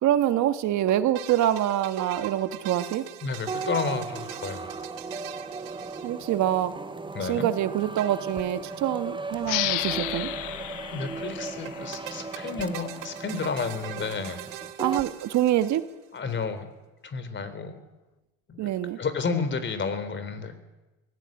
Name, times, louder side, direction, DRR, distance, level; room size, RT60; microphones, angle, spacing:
voice 1, 0.0-3.0 6.0-6.7 7.2-10.3 14.8-15.8 18.6-19.0, right 12 dB, 60° right, 10 dB, 1.6 m, -25 dB
sound 1, 0.9-6.7 8.0-8.8 9.1-9.2 9.3-9.4 11.7-16.2, right 12 dB, 80° right, 2.0 m, -41 dB
voice 2, 3.2-4.7 7.1-7.5 10.9-14.4 16.1-16.7 17.0-17.8 18.5-18.7 19.0-20.6, left 4 dB, 35° left, 12 dB, 3.7 m, -31 dB
sound 2, 3.5-15.1, right 3 dB, 15° right, 1.3 m, -37 dB
sound 3, 9.4-12.7, left 16 dB, 70° left, 1.2 m, -32 dB
23.0 x 16.5 x 9.1 m, 1.1 s
supercardioid pair, 95°, 33 cm